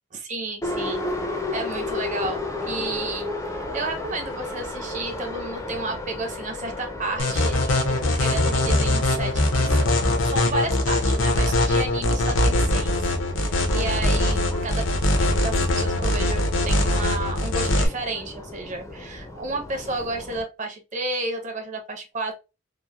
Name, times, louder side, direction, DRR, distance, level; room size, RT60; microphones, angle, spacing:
voice 1, 0.1-9.9 10.3-13.0 13.4-14.9 15.2-22.3, right 2 dB, 40° right, 0.6 m, -32 dB
Subway metro underground, 0.6-20.4, left 2 dB, 15° left, 0.4 m, -34 dB
sound 1, 7.2-17.9, left 1 dB, 70° left, 0.6 m, -22 dB
3.0 x 2.0 x 2.2 m
head